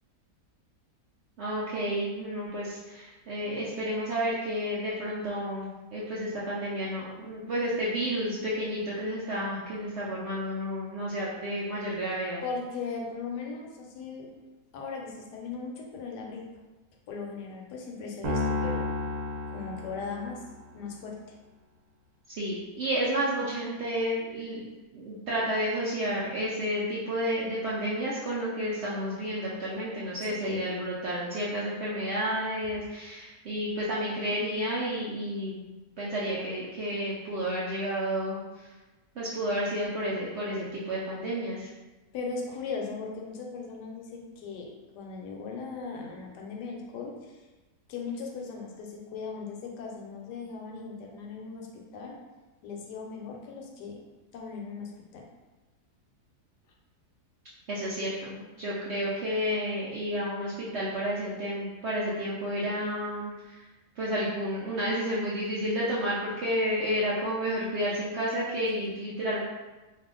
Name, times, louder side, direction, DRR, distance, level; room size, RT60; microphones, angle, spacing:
voice 1, 1.4-12.4 22.3-24.7 24.9-35.6 36.0-38.4 39.2-41.7 57.7-63.6 64.0-69.4, equal, 80° right, -7 dB, 0.6 m, -31 dB
voice 2, 12.4-14.3 14.7-16.5 17.1-18.9 19.5-20.4 20.7-21.2 30.4-30.6 42.1-47.4 47.9-52.2 52.6-54.0 54.3-55.3 68.8-68.9, left 4 dB, 80° left, 0 dB, 1.2 m, -38 dB
sound 1, 18.2-20.6, left 2 dB, 60° right, 0.9 m, -31 dB
2.7 x 2.4 x 3.6 m, 1.2 s
omnidirectional pair, 1.8 m